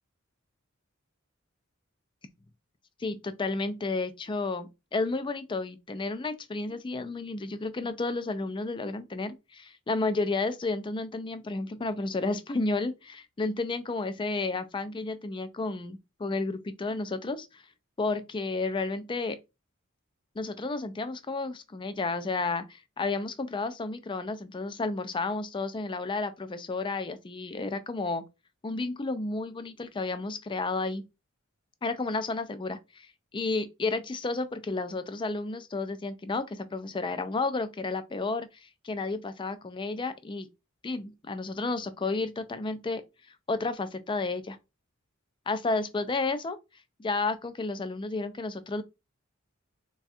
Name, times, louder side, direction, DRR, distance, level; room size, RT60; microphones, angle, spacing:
voice 1, 3.0-17.6 18.0-19.4 20.4-28.2 28.6-31.0 31.8-33.1 33.3-38.5 38.8-40.5 40.8-43.0 43.5-44.6 45.5-46.6 47.0-48.8, left 3 dB, 25° left, 0.4 m, -32 dB
3.5 x 2.3 x 4.1 m
head